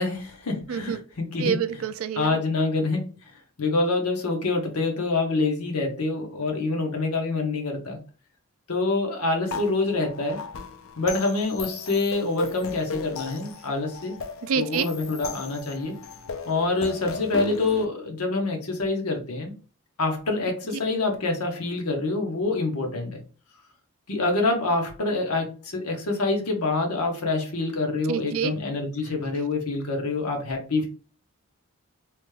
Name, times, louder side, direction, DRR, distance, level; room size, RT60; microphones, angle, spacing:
voice 1, 0.0-1.6 2.2-3.1 3.6-8.0 8.7-10.4 11.0-14.1 14.5-16.0 16.5-19.5 20.0-23.2 24.1-30.9, left 3 dB, 80° left, 3 dB, 0.9 m, -26 dB
voice 2, 0.7-1.0 1.4-2.4 14.4-14.9 28.1-28.5, right 7 dB, 65° right, 12 dB, 0.3 m, -27 dB
sound 1, 9.5-17.9, left 5 dB, 60° left, 0.4 m, -36 dB
3.1 x 2.2 x 3.2 m, 0.36 s
head